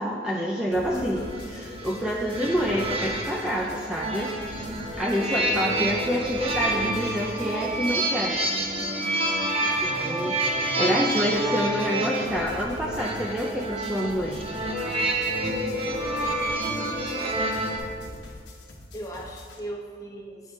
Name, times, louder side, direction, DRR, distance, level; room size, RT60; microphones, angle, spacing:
voice 1, 0.0-1.2 1.5-4.6 5.0-8.4 9.8-14.4, equal, 5° right, -2 dB, 0.4 m, -27 dB
sound 1, 0.7-8.3 8.6-19.6, left 1 dB, 80° left, 1.2 m, -45 dB
voice 2, 0.9-1.9 16.5-17.4 18.9-20.4, equal, 20° left, -2 dB, 1.0 m, -38 dB
sound 2, 1.2-17.8, right 1 dB, 35° right, 0.9 m, -28 dB
8.8 x 6.3 x 3.6 m, 2.2 s
head